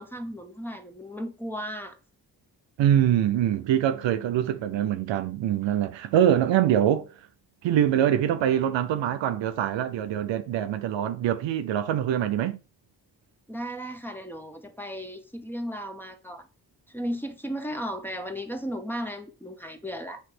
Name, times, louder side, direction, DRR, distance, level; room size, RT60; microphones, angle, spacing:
voice 1, 0.0-2.0 13.5-16.4 16.9-20.2, equal, 5° left, 1.7 m, -35 dB
voice 2, 2.8-7.0 7.6-12.6, right 10 dB, 85° right, 0.7 m, -24 dB
8.2 x 3.2 x 6.0 m
supercardioid pair, 45°, 44 cm